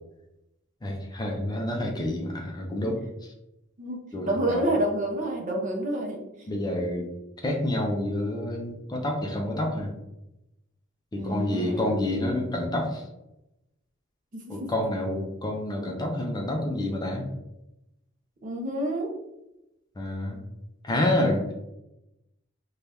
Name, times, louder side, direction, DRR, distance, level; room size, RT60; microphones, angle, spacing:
voice 1, 0.8-3.0 4.1-4.7 6.5-7.1 7.4-9.9 11.1-13.0 14.5-17.3 20.0-20.4 20.8-21.5, left 1 dB, 20° left, 1 dB, 0.5 m, -28 dB
voice 2, 3.8-6.2 11.1-12.0 14.3-14.7 18.4-19.2, right 1 dB, 40° right, 1 dB, 0.5 m, -29 dB
2.7 x 2.2 x 3.3 m, 0.89 s
head